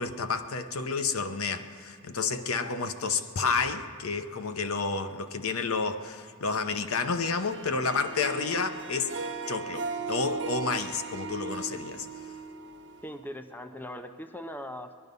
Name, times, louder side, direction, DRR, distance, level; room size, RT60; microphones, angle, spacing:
voice 1, 0.0-9.2 9.5-12.3, left 4 dB, 70° left, 9 dB, 0.8 m, -30 dB
Harp, 7.2-13.5, right 4 dB, 60° right, 1.2 m, -38 dB
voice 2, 13.0-14.9, left 1 dB, 10° left, 9 dB, 0.5 m, -40 dB
20.5 x 12.0 x 5.4 m, 2.1 s
head